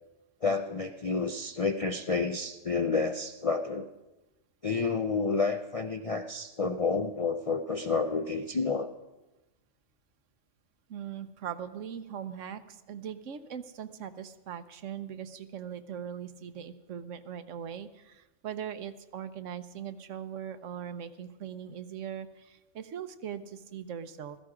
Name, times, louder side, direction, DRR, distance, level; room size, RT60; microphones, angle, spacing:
voice 1, 0.4-3.9 4.6-8.9, left 4 dB, 50° left, 7 dB, 0.4 m, -30 dB
voice 2, 10.9-24.4, right 8 dB, 75° right, 12 dB, 1.1 m, -40 dB
16.0 x 14.0 x 4.9 m, 1.0 s
omnidirectional pair, 1.3 m